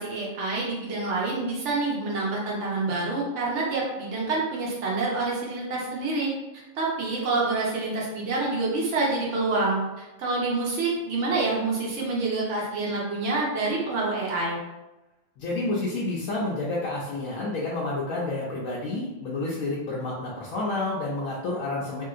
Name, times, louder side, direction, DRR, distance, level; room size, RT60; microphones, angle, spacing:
voice 1, 0.0-6.3 6.7-14.6, right 3 dB, 65° right, -4 dB, 1.1 m, -27 dB
voice 2, 15.4-22.0, left 2 dB, 85° left, -5 dB, 1.0 m, -29 dB
3.1 x 2.7 x 2.4 m, 1.0 s
omnidirectional pair, 1.4 m